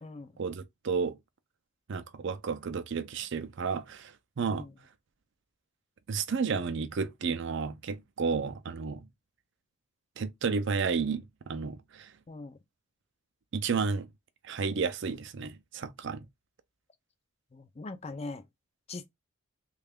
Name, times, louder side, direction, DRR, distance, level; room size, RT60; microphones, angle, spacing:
voice 1, 0.4-1.2 1.9-4.7 6.1-9.1 10.2-12.1 13.5-14.1 14.4-16.3, right 5 dB, 55° right, 0.4 m, -32 dB
voice 2, 12.3-12.6 17.5-18.4 18.9-19.1, left 3 dB, 30° left, 0.4 m, -41 dB
3.2 x 2.3 x 3.5 m
head